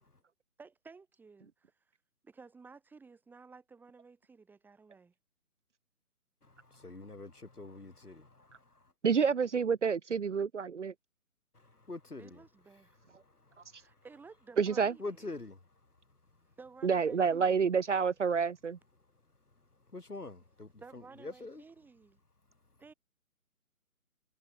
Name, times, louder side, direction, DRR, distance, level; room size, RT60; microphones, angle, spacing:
voice 1, 0.6-1.8 2.2-5.1 12.2-13.0 13.7-15.3 16.6-17.6 20.8-22.2 22.8-22.9, right 4 dB, 5° right, 3.7 m, -54 dB
voice 2, 6.6-8.6 11.5-12.4 15.0-15.6 19.9-21.6, left 2 dB, 85° left, 2.7 m, -45 dB
voice 3, 9.0-10.9 14.6-14.9 16.8-18.8, right 6 dB, 50° right, 1.0 m, -28 dB
figure-of-eight pair, 145°, 45 cm